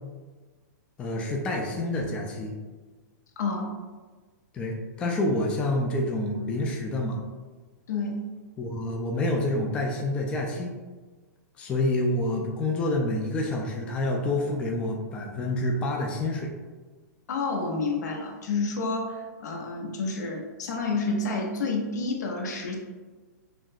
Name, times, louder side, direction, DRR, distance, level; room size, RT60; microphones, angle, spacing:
voice 1, 1.0-2.5 4.5-7.2 8.6-10.7 11.6-16.5, left 1 dB, 10° left, 0 dB, 0.3 m, -28 dB
voice 2, 3.4-3.7 7.9-8.2 17.3-22.7, left 3 dB, 75° left, 1 dB, 0.8 m, -29 dB
6.0 x 2.1 x 2.6 m, 1.3 s
hypercardioid pair, 160°, 9 cm